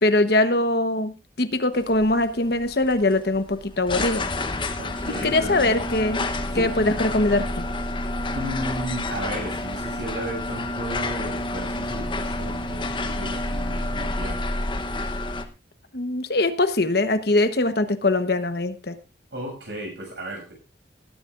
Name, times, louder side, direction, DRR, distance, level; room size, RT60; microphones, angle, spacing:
voice 1, 0.0-4.2 5.1-6.3 6.6-7.6 15.9-18.9, left 2 dB, 60° left, 10 dB, 1.1 m, -22 dB
sound 1, 1.8-15.5, left 2 dB, 25° left, 0.9 m, -29 dB
voice 2, 4.8-5.8 6.5-7.0 8.3-14.5 19.3-20.5, right 1 dB, 75° right, 1 dB, 6.8 m, -34 dB
19.0 x 11.5 x 2.5 m, 0.31 s
head